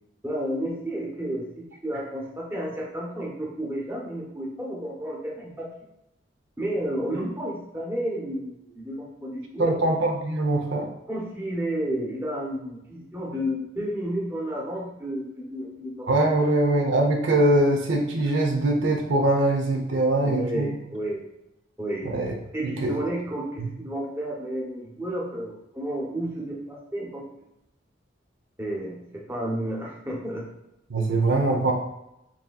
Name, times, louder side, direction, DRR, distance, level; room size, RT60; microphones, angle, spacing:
voice 1, 0.2-5.7 6.6-10.0 11.1-16.1 16.4-16.5 20.2-21.2 21.8-22.1 22.5-27.2 28.6-30.4 31.1-31.2, right 1 dB, 10° right, -3 dB, 0.8 m, -31 dB
voice 2, 9.6-10.9 16.1-20.7 22.0-22.3 22.8-22.9 23.6-23.7 30.9-31.7, right 2 dB, 80° right, 2 dB, 0.7 m, -22 dB
5.8 x 2.8 x 2.3 m, 0.85 s
head